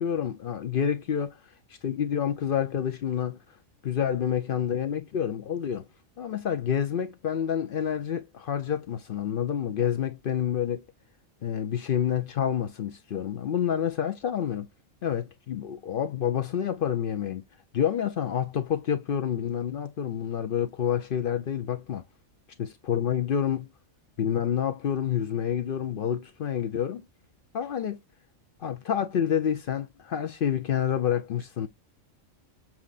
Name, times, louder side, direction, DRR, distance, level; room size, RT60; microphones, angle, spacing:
voice 1, 0.0-1.4 1.8-3.4 3.8-5.9 6.2-10.8 11.4-14.7 15.0-17.4 17.7-22.0 22.6-23.7 24.2-27.0 27.5-28.0 28.6-31.7, left 9 dB, 55° left, 0.6 m, -28 dB
7.1 x 2.5 x 2.4 m
omnidirectional pair, 1.3 m